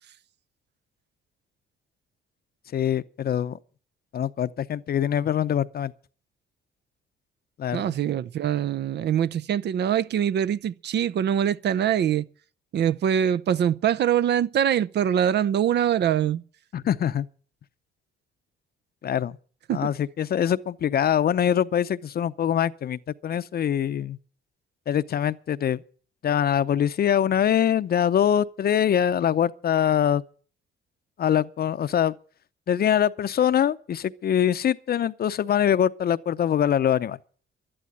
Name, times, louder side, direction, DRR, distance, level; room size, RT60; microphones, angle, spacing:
voice 1, 2.7-3.6 4.1-5.9 7.6-7.9 16.7-17.3 19.0-19.4 19.7-24.2 24.9-25.8 26.2-30.2 31.2-32.2 32.7-37.2, left 9 dB, 50° left, 0.7 m, -23 dB
voice 2, 7.7-12.3 12.7-16.4 19.7-19.9, right 9 dB, 60° right, 0.6 m, -23 dB
12.0 x 11.0 x 7.7 m
cardioid pair, 90°, 20 cm